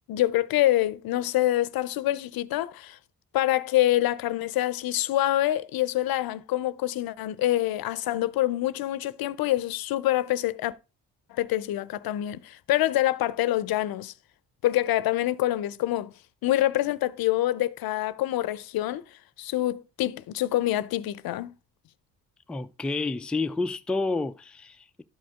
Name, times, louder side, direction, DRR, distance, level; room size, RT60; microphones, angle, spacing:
voice 1, 0.1-3.0 3.3-10.7 11.3-14.1 14.6-16.1 16.4-19.0 19.4-21.5, left 14 dB, 75° left, 0.6 m, -26 dB
voice 2, 22.5-25.0, left 3 dB, 5° left, 0.3 m, -29 dB
11.5 x 5.0 x 3.5 m
cardioid pair, 75°, 37 cm